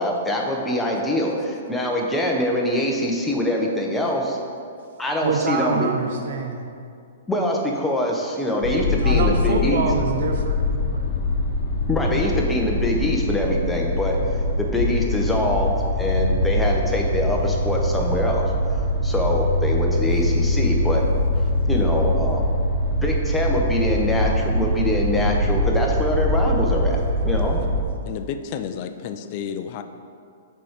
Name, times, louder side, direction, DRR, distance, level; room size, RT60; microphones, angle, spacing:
voice 1, 0.0-4.4 5.0-5.9 7.3-9.8 11.9-14.2 14.6-18.5 18.7-21.1 21.7-22.5 23.0-27.6, left 1 dB, 5° left, -1 dB, 0.7 m, -24 dB
voice 2, 5.2-6.7 9.0-11.1, right 4 dB, 60° right, 4 dB, 0.9 m, -25 dB
sound 1, 8.6-27.8, left 1 dB, 55° left, 0.9 m, -23 dB
voice 3, 28.0-29.8, left 8 dB, 35° left, 8 dB, 0.3 m, -31 dB
6.8 x 4.5 x 5.0 m, 2.3 s
hypercardioid pair, 165°, 0 cm